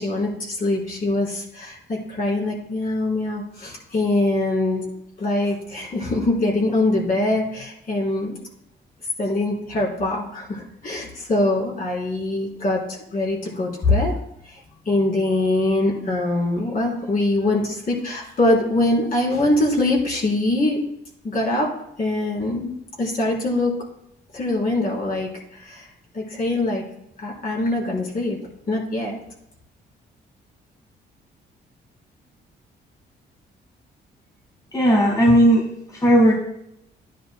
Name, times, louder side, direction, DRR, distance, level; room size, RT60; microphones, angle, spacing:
voice 1, 0.0-4.8 5.2-8.3 9.2-14.2 14.5-14.6 14.8-20.8 21.2-21.7 22.0-23.7 24.3-25.3 25.6-25.9 26.1-26.8 27.2-28.4 28.7-29.2, left 2 dB, 50° left, -3 dB, 3.6 m, -23 dB
voice 2, 34.7-36.3, equal, 20° left, -3 dB, 1.6 m, -16 dB
12.0 x 10.0 x 2.2 m, 0.78 s
cardioid pair, 100°, 19 cm